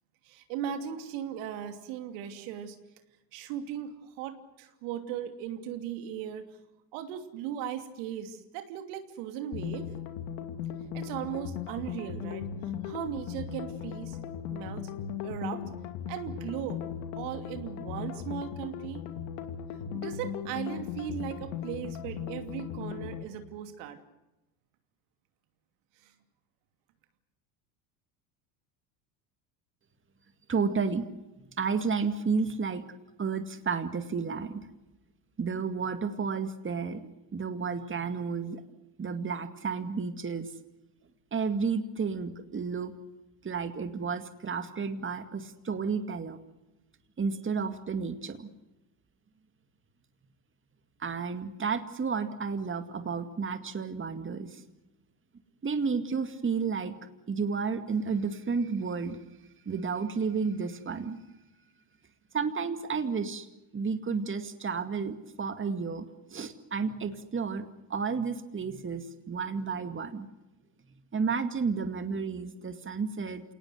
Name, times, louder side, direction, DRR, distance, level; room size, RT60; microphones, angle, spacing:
voice 1, 0.2-2.8 3.3-6.4 6.9-9.9 10.9-12.5 12.8-14.2 14.5-14.8 15.2-15.6 16.1-16.8 17.2-19.1 19.9-24.0 26.0-26.1, right 9 dB, 75° right, 7 dB, 2.9 m, -37 dB
sound 1, 9.5-23.2, left 8 dB, 75° left, 2.7 m, -38 dB
voice 2, 30.5-31.0 31.6-32.8 33.2-34.7 35.4-38.6 39.0-40.5 41.3-42.9 43.4-46.4 47.2-48.5 51.0-54.6 55.6-57.0 57.3-59.2 59.7-61.2 62.3-63.5 63.7-70.3 71.1-73.4, right 5 dB, 25° right, 9 dB, 2.2 m, -32 dB
28.0 x 19.0 x 8.1 m, 0.99 s
supercardioid pair, 85°, 49 cm